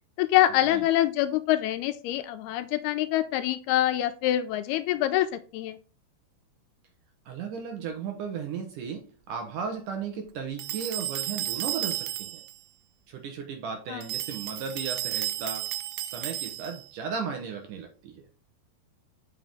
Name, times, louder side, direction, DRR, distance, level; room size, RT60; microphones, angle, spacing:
voice 1, 0.2-5.8 13.9-14.0, left 14 dB, 85° left, 2.5 m, -25 dB
voice 2, 7.3-12.4 13.1-15.7 16.0-18.2, right 6 dB, 70° right, 2.1 m, -35 dB
sound 1, 10.6-12.6 14.0-16.9, right 14 dB, 90° right, 2.7 m, -33 dB
7.6 x 5.8 x 3.5 m
omnidirectional pair, 4.7 m